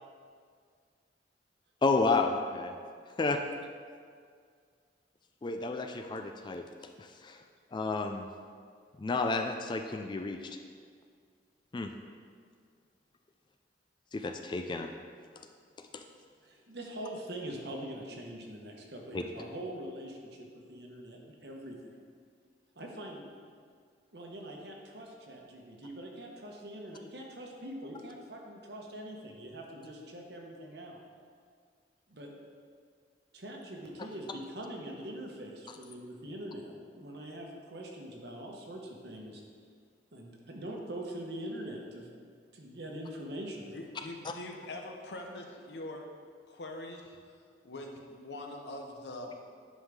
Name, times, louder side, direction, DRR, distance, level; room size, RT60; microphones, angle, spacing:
voice 1, 1.8-2.7 3.2-3.4 5.4-6.7 7.0-7.4 7.7-8.3 9.0-10.6 11.7-11.9 14.1-14.9 15.9-16.0 19.1-19.2, left 3 dB, 25° left, 5 dB, 0.3 m, -31 dB
voice 2, 16.4-22.0 22.7-23.2 24.1-31.0 32.1-32.3 33.3-39.4 40.1-42.2 42.5-43.8, right 1 dB, 65° right, 0 dB, 1.2 m, -43 dB
voice 3, 43.7-46.1 46.5-47.2 47.6-49.3, left 1 dB, 70° left, 2 dB, 0.9 m, -43 dB
9.9 x 5.5 x 3.6 m, 2.1 s
head